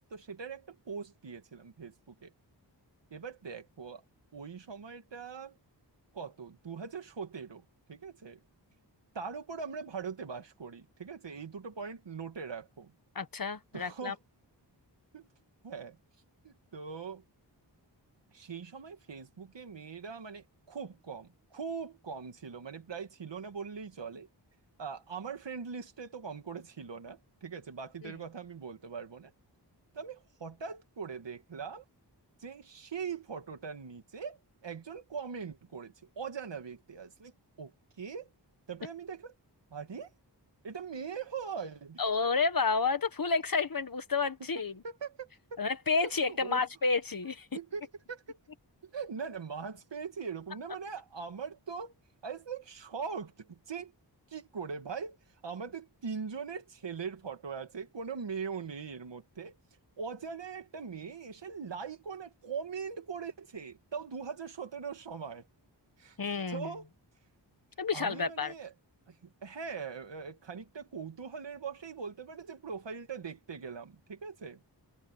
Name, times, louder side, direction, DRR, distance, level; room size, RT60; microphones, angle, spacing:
voice 1, 0.0-2.3 3.1-4.0 4.3-5.6 6.1-7.6 7.9-8.4 9.1-12.9 13.7-14.2 15.1-15.3 15.6-16.0 16.4-17.2 18.3-24.3 24.8-29.3 29.9-31.8 32.4-37.3 37.6-37.7 38.0-38.3 38.7-39.4 39.7-40.1 40.6-42.0 44.6-45.6 46.0-46.6 47.5-48.4 48.8-51.9 52.2-53.9 54.3-55.2 55.4-59.6 60.0-65.5 66.0-66.2 66.5-66.9 67.9-68.7 69.1-69.2 69.4-74.6, right 5 dB, 80° right, 2.3 m, -41 dB
voice 2, 13.1-14.1 28.0-28.1 42.0-44.7 45.6-47.5 66.2-66.7 67.8-68.5, left 4 dB, 50° left, 1.6 m, -30 dB
wide cardioid pair, 105°, 43 cm